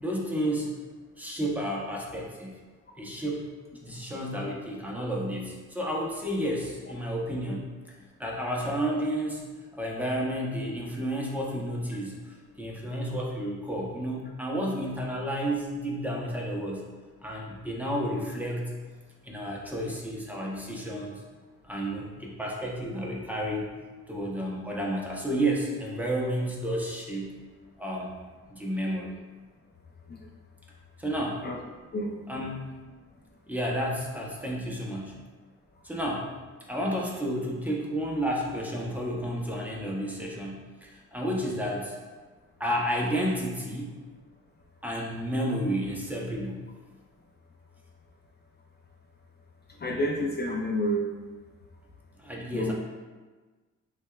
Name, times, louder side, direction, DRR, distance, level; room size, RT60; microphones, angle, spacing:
voice 1, 0.0-0.8 1.2-2.6 3.0-3.5 3.8-7.7 8.2-9.4 9.7-16.8 17.2-18.7 19.2-21.2 21.6-23.6 24.1-27.3 27.8-28.1 28.5-29.1 31.0-31.5 32.3-32.7 33.5-35.2 35.8-36.3 36.7-42.0 42.6-43.9 44.8-46.6 52.2-52.7, equal, 5° right, -3 dB, 0.7 m, -31 dB
voice 2, 31.9-32.5 49.8-51.0 52.5-52.7, equal, 35° left, -1 dB, 0.5 m, -29 dB
5.9 x 2.4 x 2.3 m, 1.3 s
cardioid pair, 90°, 30 cm